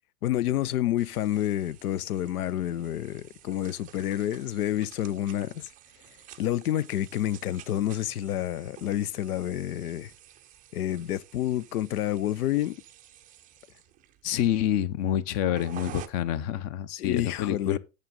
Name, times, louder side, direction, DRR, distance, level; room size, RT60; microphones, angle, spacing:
voice 1, 0.2-5.7 6.4-10.1 10.7-12.8 17.0-17.8, left 12 dB, 70° left, 0.6 m, -29 dB
sound 1, 1.0-16.1, right 12 dB, 20° right, 0.5 m, -50 dB
voice 2, 14.2-17.8, left 11 dB, 35° left, 0.7 m, -27 dB
9.0 x 6.5 x 3.7 m
figure-of-eight pair, 95°, 47 cm